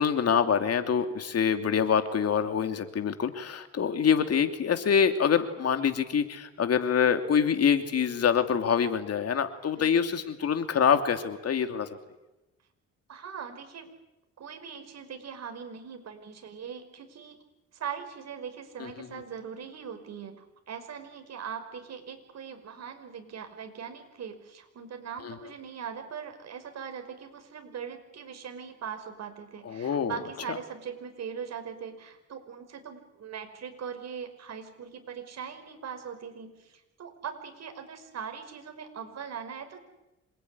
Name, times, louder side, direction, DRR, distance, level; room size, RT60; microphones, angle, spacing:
voice 1, 0.0-11.9 18.8-18.9 25.2-25.3 29.6-30.2 30.5-30.6, left 7 dB, 55° left, 7 dB, 2.9 m, -25 dB
voice 2, 13.1-13.9 14.4-17.4 17.7-39.8, right 7 dB, 60° right, 6 dB, 5.3 m, -41 dB
27.0 x 21.0 x 9.9 m, 0.99 s
cardioid pair, 90°, 30 cm